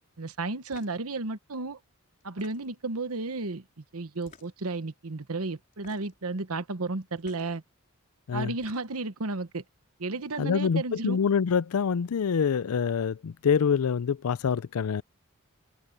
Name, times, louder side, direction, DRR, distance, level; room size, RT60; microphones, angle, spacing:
voice 1, 0.2-1.8 2.2-7.6 8.3-9.6 10.0-11.2, right 3 dB, 85° right, 1.1 m, -33 dB
sound 1, 0.7-1.0 2.2-2.9 4.1-4.7 5.7-6.2 7.2-7.5 8.4-9.1, left 4 dB, 40° left, 4.1 m, -54 dB
voice 2, 10.4-15.0, left 6 dB, 85° left, 0.4 m, -26 dB
head